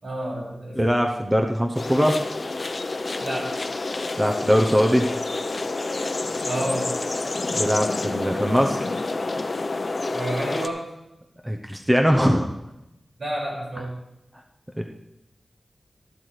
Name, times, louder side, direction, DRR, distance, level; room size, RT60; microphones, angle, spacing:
voice 1, 0.0-0.8 3.2-3.6 6.4-6.9 10.1-10.9 13.2-13.9, right 1 dB, 75° right, -4 dB, 5.4 m, -30 dB
voice 2, 0.8-2.2 4.2-5.1 7.5-8.9 11.4-12.5 14.8-14.9, equal, 10° right, 2 dB, 0.8 m, -21 dB
sound 1, 1.7-10.7, left 3 dB, 45° left, 0.7 m, -28 dB
13.5 x 12.0 x 3.3 m, 0.90 s
wide cardioid pair, 115°, 0 cm